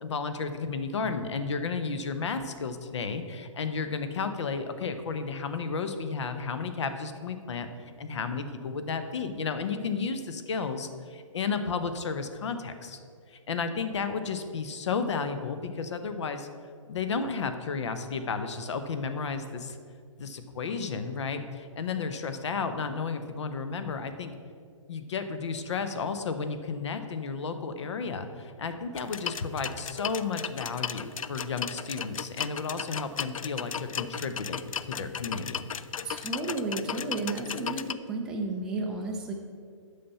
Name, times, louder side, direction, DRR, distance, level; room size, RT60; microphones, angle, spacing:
voice 1, 0.0-7.7 8.0-13.0 13.3-16.5 16.9-19.8 20.2-24.3 24.9-35.7, left 5 dB, 60° left, 9 dB, 0.8 m, -33 dB
sound 1, 28.9-37.9, left 8 dB, 85° left, 0.4 m, -36 dB
voice 2, 36.0-39.3, right 3 dB, 5° right, -2 dB, 0.4 m, -32 dB
8.4 x 5.7 x 5.5 m, 2.1 s
hypercardioid pair, 155°, 17 cm